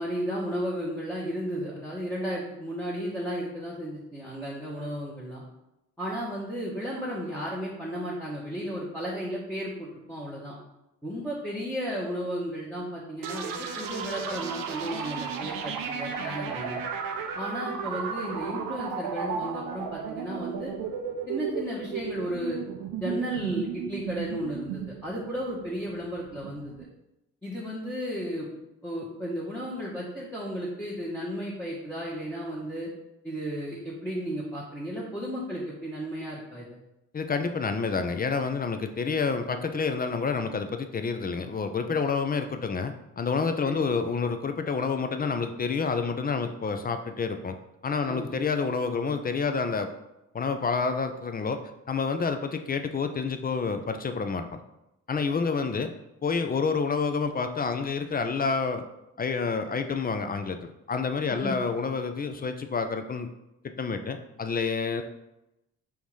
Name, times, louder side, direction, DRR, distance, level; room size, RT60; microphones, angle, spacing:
voice 1, 0.0-5.4 6.0-10.5 11.0-16.8 17.3-20.7 21.3-22.6 23.0-26.9 27.4-28.5 28.8-32.9 33.2-36.7 43.6-43.9 48.1-48.4 61.3-61.6, equal, 5° left, -6 dB, 1.2 m, -34 dB
sound 1, 13.2-26.8, right 7 dB, 85° right, 0.6 m, -34 dB
voice 2, 37.1-47.6 47.8-49.9 50.3-51.6 51.9-54.6 55.1-55.9 56.2-58.8 59.2-63.3 63.8-65.0, left 5 dB, 25° left, 8 dB, 0.5 m, -28 dB
3.5 x 2.7 x 4.7 m, 0.91 s
supercardioid pair, 60°, 34 cm